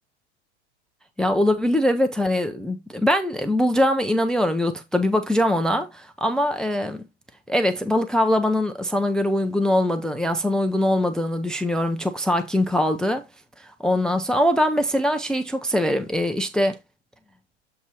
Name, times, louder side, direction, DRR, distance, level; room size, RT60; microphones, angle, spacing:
voice 1, 1.2-7.0 7.5-13.2 13.8-16.8, left 1 dB, ahead, 0.4 m, -22 dB
7.5 x 2.6 x 5.5 m
figure-of-eight pair, 95°, 36 cm